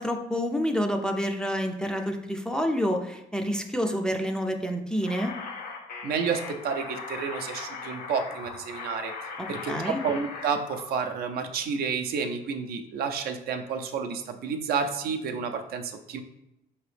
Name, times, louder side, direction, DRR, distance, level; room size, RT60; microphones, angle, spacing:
voice 1, 0.0-5.3 9.4-10.0, equal, 5° left, 3 dB, 0.4 m, -28 dB
sound 1, 5.0-10.9, left 4 dB, 65° left, 0.7 m, -39 dB
voice 2, 6.0-9.1 9.5-16.2, right 5 dB, 65° right, 6 dB, 0.5 m, -30 dB
4.7 x 2.9 x 3.3 m, 0.87 s
cardioid pair, 110°, 17 cm